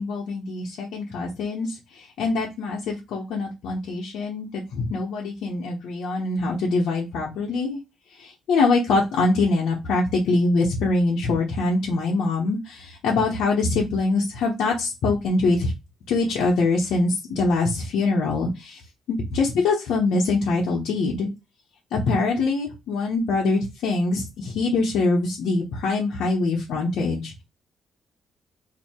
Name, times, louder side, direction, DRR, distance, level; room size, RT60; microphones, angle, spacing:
voice 1, 0.0-7.8 8.2-15.7 16.1-18.8 19.1-21.3 21.9-27.4, left 3 dB, 80° left, -2 dB, 0.9 m, -24 dB
2.8 x 2.7 x 4.2 m, 0.24 s
cardioid pair, 90°, 0 cm